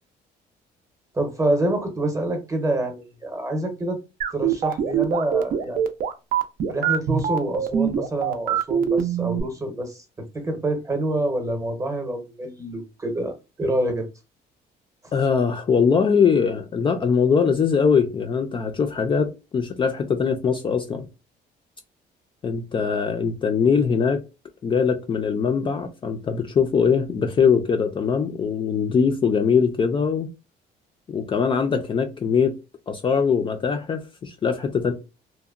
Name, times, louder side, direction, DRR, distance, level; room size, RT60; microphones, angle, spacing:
voice 1, 1.1-4.0 4.3-5.8 6.7-10.0 10.3-14.1, right 1 dB, 20° right, 0.8 m, -26 dB
sound 1, 4.2-9.4, right 9 dB, 55° right, 0.5 m, -23 dB
voice 2, 15.1-21.0 22.4-24.2 24.6-30.3 31.1-32.5 32.9-34.9, left 6 dB, 30° left, 0.4 m, -22 dB
2.8 x 2.1 x 2.3 m
cardioid pair, 110°, 17 cm